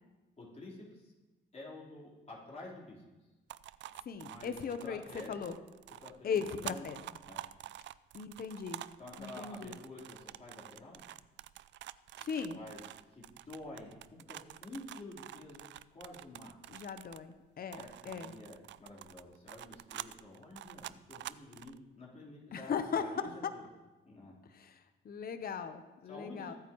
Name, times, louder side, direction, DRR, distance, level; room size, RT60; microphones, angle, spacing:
voice 1, 0.4-1.1 1.5-3.0 4.2-5.6 6.0-6.9 7.2-7.4 9.0-11.0 12.5-16.8 17.7-23.6 24.0-24.4 26.0-26.6, left 2 dB, 35° left, -5 dB, 4.0 m, -50 dB
sound 1, 3.5-17.4 17.7-21.8, right 13 dB, 65° right, 0.4 m, -48 dB
voice 2, 4.1-5.0 5.3-5.5 6.2-7.0 8.1-8.8 9.2-9.8 12.2-12.6 16.7-18.3 22.5-23.1 24.6-24.7 25.0-26.5, left 6 dB, 50° left, 9 dB, 0.9 m, -38 dB
23.0 x 8.5 x 3.1 m, 1.1 s
cardioid pair, 90°, 20 cm